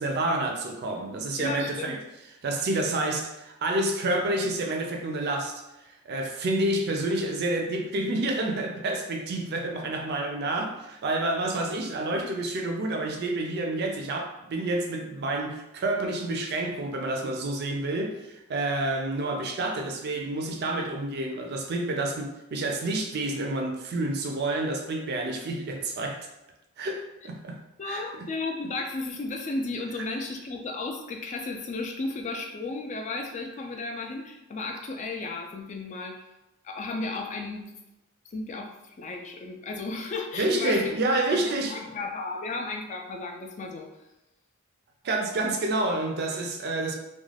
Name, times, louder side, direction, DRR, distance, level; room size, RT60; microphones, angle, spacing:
voice 1, 0.0-2.0 2.4-5.6 6.1-26.3 26.8-28.3 40.4-41.8 45.0-47.0, right 2 dB, 50° right, 3 dB, 0.4 m, -29 dB
voice 2, 1.4-2.0 27.8-36.2 36.6-37.7 38.3-40.9 41.4-43.9, left 3 dB, 35° left, 3 dB, 0.3 m, -34 dB
2.4 x 2.2 x 3.2 m, 0.95 s
head